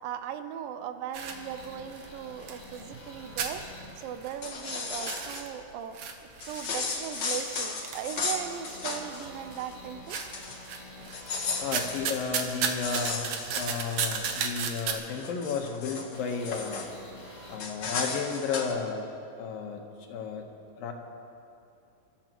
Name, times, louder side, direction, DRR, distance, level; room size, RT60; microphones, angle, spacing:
voice 1, 0.0-3.6 4.0-10.2, right 9 dB, 90° right, 9 dB, 2.5 m, -38 dB
sound 1, 1.1-3.1 3.4-4.7 4.9-8.8 9.2-9.8 10.1-11.3 11.6-14.9, right 6 dB, 65° right, 1.9 m, -34 dB
sound 2, 1.2-4.4 4.9-5.4 6.0-6.1 7.1-7.2 7.9-12.2 13.2-13.3 14.2-14.3 15.2-15.3 16.1-17.6, left 1 dB, 30° left, 3.6 m, -48 dB
sound 3, 4.2-5.4 6.4-9.3 9.5-9.7 10.1-10.7 11.1-14.3 14.9-16.9 17.6-18.7, left 4 dB, 65° left, 1.0 m, -35 dB
voice 2, 11.6-13.3 13.5-16.9 17.5-19.1 19.4-20.9, left 5 dB, 85° left, 3 dB, 2.9 m, -33 dB
26.0 x 13.5 x 3.0 m, 2.6 s
omnidirectional pair, 3.9 m